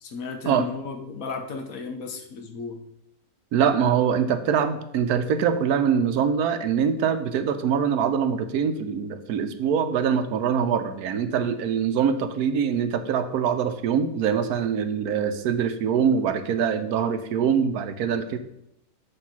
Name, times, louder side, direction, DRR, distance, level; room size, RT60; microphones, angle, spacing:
voice 1, 0.0-2.8, left 4 dB, 70° left, 6 dB, 1.3 m, -34 dB
voice 2, 3.5-18.4, right 7 dB, 90° right, 9 dB, 1.2 m, -23 dB
7.7 x 3.5 x 5.9 m, 0.80 s
omnidirectional pair, 1.6 m